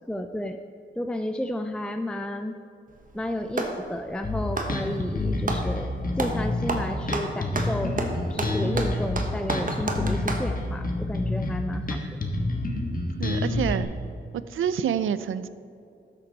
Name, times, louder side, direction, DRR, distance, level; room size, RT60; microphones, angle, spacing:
voice 1, 0.1-0.6 1.0-2.6 3.1-8.0 8.3-12.0, left 1 dB, 5° left, 7 dB, 0.5 m, -32 dB
Clapping, 2.9-3.8 4.4-5.7 6.2-6.4 6.7-10.5, right 3 dB, 40° right, 1.3 m, -30 dB
Bass guitar, 4.2-13.8, left 2 dB, 45° left, 1.4 m, -28 dB
voice 2, 13.2-13.9 14.3-15.5, right 8 dB, 80° right, 14 dB, 0.5 m, -27 dB
12.5 x 6.9 x 4.1 m, 2.4 s
cardioid pair, 65°, 20 cm